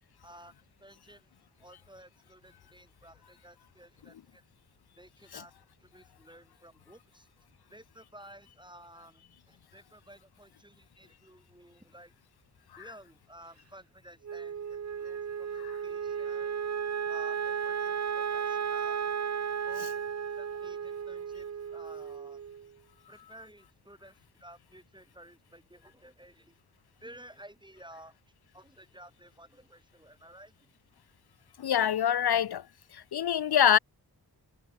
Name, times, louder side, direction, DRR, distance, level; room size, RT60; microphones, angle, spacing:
voice 1, 0.2-0.5 0.8-1.3 1.6-4.4 5.0-5.5 5.8-7.3 7.7-12.1 12.8-16.6 17.1-19.2 19.6-22.4 23.1-26.6 27.0-28.2 28.5-30.8, right 1 dB, 10° right, 5.0 m, -54 dB
Wind instrument woodwind instrument, 14.2-22.7, right 7 dB, 45° right, 0.6 m, -34 dB
voice 2, 31.6-32.7 32.9-33.8, left 9 dB, 70° left, 0.6 m, -25 dB
cardioid pair, 50°, 39 cm